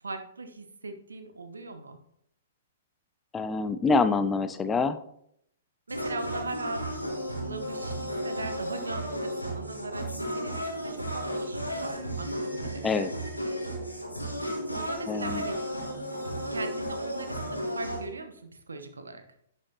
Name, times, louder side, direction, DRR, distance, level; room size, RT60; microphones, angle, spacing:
voice 1, 0.0-2.0 5.9-13.1 14.7-15.7 16.3-19.2, right 3 dB, 70° right, 8 dB, 1.0 m, -40 dB
voice 2, 3.3-5.0 12.8-13.1 15.1-15.4, left 4 dB, 15° left, 11 dB, 0.5 m, -26 dB
sound 1, 5.9-18.1, equal, 90° left, 1.7 m, -34 dB
11.0 x 6.8 x 2.9 m, 0.71 s
figure-of-eight pair, 110°, 0 cm